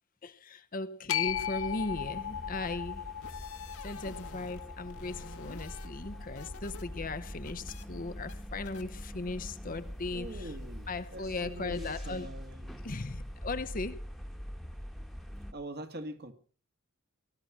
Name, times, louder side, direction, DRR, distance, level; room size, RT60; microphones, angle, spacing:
voice 1, 0.2-3.1 3.8-10.5 10.9-12.3 12.8-14.0, left 3 dB, 40° left, 0.8 m, -38 dB
sound 1, 1.1-7.3, left 10 dB, 65° left, 0.9 m, -38 dB
sound 2, 1.2-15.5, equal, ahead, 1.3 m, -44 dB
sound 3, 3.0-4.6 4.9-6.8 7.1-7.8 8.3-8.4 8.6-8.8, left 4 dB, 85° left, 1.9 m, -50 dB
voice 2, 10.1-12.8 15.5-16.3, right 1 dB, 45° right, 1.7 m, -43 dB
18.5 x 12.5 x 6.0 m
head